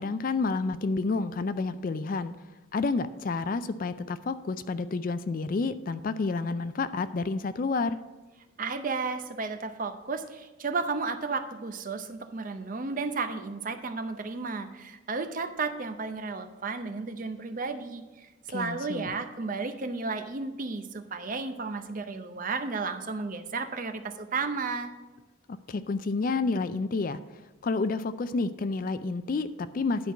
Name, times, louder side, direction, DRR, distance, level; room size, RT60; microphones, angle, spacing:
voice 1, 0.0-2.3 2.7-8.0 18.5-19.1 25.7-27.2 27.6-30.1, left 3 dB, 40° left, 13 dB, 0.3 m, -29 dB
voice 2, 8.6-24.9, right 4 dB, 40° right, 8 dB, 0.6 m, -33 dB
10.0 x 4.5 x 6.9 m, 1.2 s
head